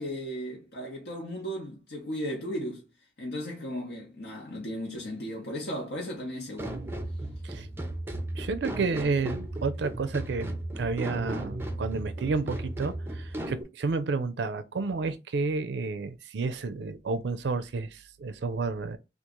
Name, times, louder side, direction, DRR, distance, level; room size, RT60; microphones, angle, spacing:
voice 1, 0.0-2.9 3.2-6.8, equal, 65° left, 0.9 m, -36 dB
sound 1, 6.6-13.6, right 1 dB, 10° right, 0.5 m, -35 dB
voice 2, 8.3-19.0, right 4 dB, 75° right, 0.4 m, -31 dB
3.0 x 2.4 x 3.6 m
head